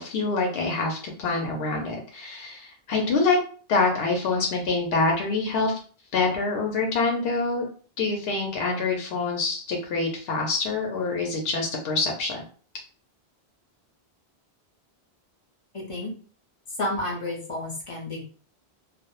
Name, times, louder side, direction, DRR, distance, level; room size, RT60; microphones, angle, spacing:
voice 1, 0.0-3.4 3.7-5.7 6.1-7.6 8.0-12.4, left 3 dB, 70° left, 0 dB, 0.8 m, -26 dB
voice 2, 15.7-16.1 16.8-18.2, left 1 dB, 35° left, -1 dB, 0.6 m, -31 dB
2.2 x 2.0 x 2.9 m, 0.41 s
omnidirectional pair, 1.1 m